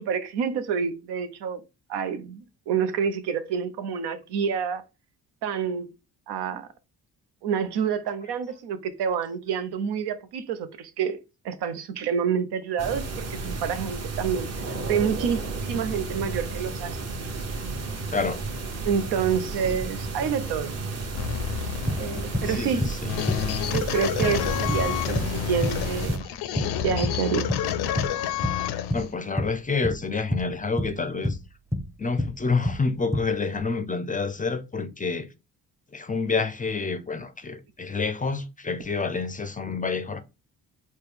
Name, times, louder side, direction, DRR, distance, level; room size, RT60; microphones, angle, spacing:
voice 1, 0.0-1.6 1.9-4.8 5.4-5.9 6.3-6.7 7.4-11.2 11.4-14.5 14.9-17.0 18.8-20.7 22.0-22.9 23.7-26.2 26.8-27.5, right 7 dB, 80° right, 0.6 m, -28 dB
sound 1, 12.8-26.2, right 3 dB, 40° right, 1.0 m, -33 dB
voice 2, 18.1-18.4 22.4-23.2 28.9-31.4 32.0-35.3 35.9-40.2, left 4 dB, 20° left, 0.4 m, -28 dB
sound 2, 21.1-29.1, left 10 dB, 75° left, 0.5 m, -29 dB
sound 3, 21.9-22.6 22.8-23.0 23.3-24.0 24.2-25.4 25.6-26.3 26.6-27.2 27.5-27.7 28.0-28.6 28.9-30.1 30.3-31.5 31.7-32.9 33.1-33.6, left 1 dB, 5° right, 0.8 m, -28 dB
4.2 x 2.2 x 3.3 m
supercardioid pair, 60°, 39 cm